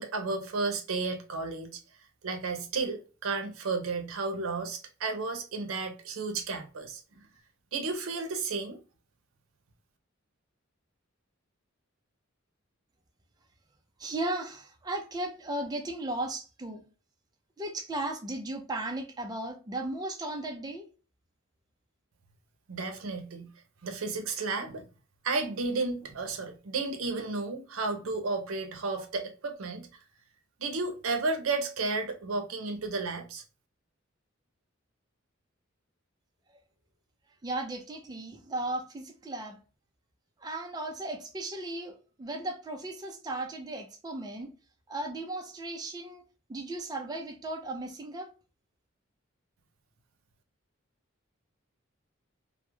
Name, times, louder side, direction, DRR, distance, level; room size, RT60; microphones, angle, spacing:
voice 1, 0.0-1.8 2.2-7.0 7.7-8.8 22.7-23.5 23.8-24.9 25.2-29.9 30.6-33.4, right 3 dB, 85° right, 0.6 m, -32 dB
voice 2, 14.0-16.8 17.6-20.9 37.4-39.6 40.4-44.5 44.9-46.2 46.5-48.3, right 2 dB, 20° right, 0.4 m, -36 dB
2.3 x 2.0 x 2.9 m
head